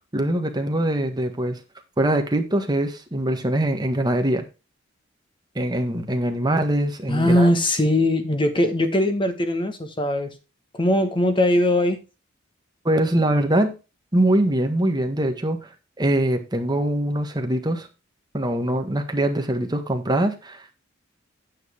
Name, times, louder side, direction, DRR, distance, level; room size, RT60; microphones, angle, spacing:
voice 1, 0.1-1.6 2.0-4.4 5.5-7.5 12.8-13.8 14.1-15.6 16.0-17.9 18.3-20.7, right 1 dB, 20° right, 5 dB, 1.6 m, -23 dB
voice 2, 7.1-10.3 10.7-12.0, left 1 dB, 25° left, 8 dB, 1.5 m, -20 dB
9.4 x 7.7 x 3.6 m, 0.29 s
head